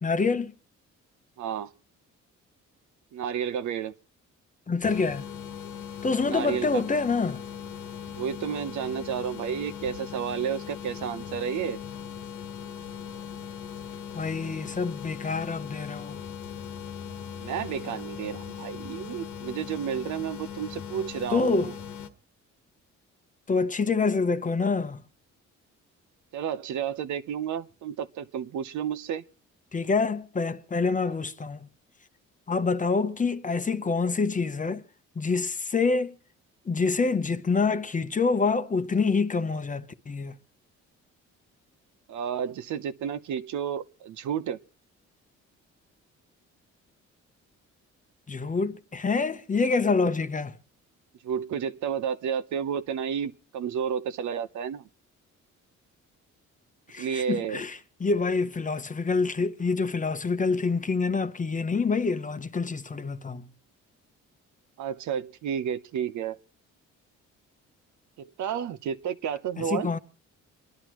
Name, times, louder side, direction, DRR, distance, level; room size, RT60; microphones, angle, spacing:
voice 1, 0.0-0.5 4.7-5.2 6.0-7.4 14.1-16.2 21.3-21.7 23.5-25.0 29.7-31.7 32.5-34.8 35.2-36.2 36.7-40.3 48.3-50.5 56.9-63.5 69.6-70.0, left 4 dB, 25° left, 0.9 m, -26 dB
voice 2, 1.4-1.7 3.1-4.0 6.2-6.8 8.1-11.8 17.4-21.8 26.3-29.2 31.1-31.2 42.1-44.6 51.2-54.9 57.0-57.6 64.8-66.4 68.2-69.9, right 8 dB, 70° right, 0.8 m, -31 dB
sound 1, 4.8-22.1, left 8 dB, 85° left, 1.5 m, -39 dB
29.0 x 11.0 x 3.0 m
cardioid pair, 90°, 30 cm